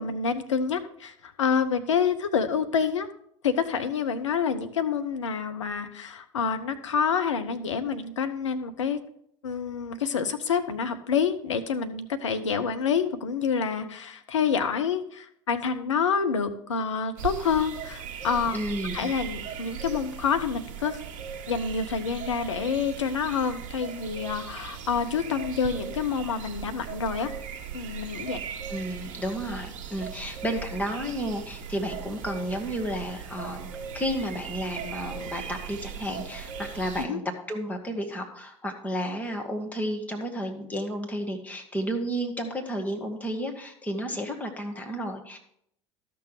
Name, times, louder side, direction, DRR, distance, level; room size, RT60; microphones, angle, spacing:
voice 1, 0.0-3.1 3.4-9.0 9.4-18.6 18.9-21.0 21.5-27.3 27.7-28.4 37.0-37.2, left 6 dB, 75° left, 9 dB, 0.8 m, -27 dB
sound 1, 17.2-37.1, right 8 dB, 50° right, 1.5 m, -38 dB
voice 2, 18.5-19.1 28.7-33.7 33.9-37.2 37.5-45.4, equal, 10° left, 2 dB, 1.8 m, -32 dB
12.5 x 6.1 x 4.9 m, 0.70 s
figure-of-eight pair, 70°, 16 cm